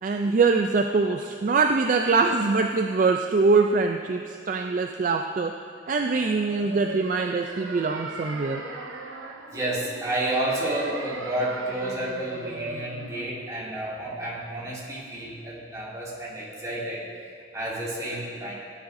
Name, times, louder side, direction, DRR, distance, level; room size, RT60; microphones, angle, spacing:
voice 1, 0.0-5.6 5.9-8.6, right 4 dB, 45° right, 4 dB, 0.3 m, -23 dB
sound 1, 6.1-13.2, right 2 dB, 90° right, 1.0 m, -38 dB
voice 2, 9.5-17.0 17.5-18.5, right 1 dB, 20° right, -7 dB, 2.4 m, -30 dB
16.0 x 9.5 x 2.6 m, 2.4 s
head